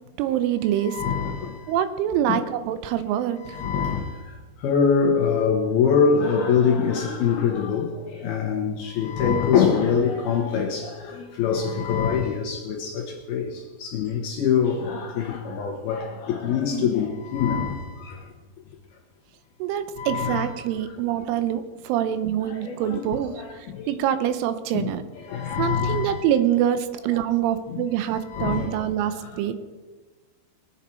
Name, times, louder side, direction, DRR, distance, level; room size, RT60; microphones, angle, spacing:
voice 1, 0.2-1.0 1.7-3.6 19.6-25.0 25.6-29.5, right 10 dB, 80° right, 3.1 m, -25 dB
voice 2, 0.8-1.7 2.3-2.4 3.4-4.2 4.6-13.5 13.8-18.2 20.0-20.5 22.4-24.0 24.7-24.9 25.3-26.2 27.7-27.9 28.3-28.8 29.4-29.5, left 6 dB, 70° left, 2.5 m, -24 dB
22.0 x 8.4 x 4.4 m
omnidirectional pair, 5.7 m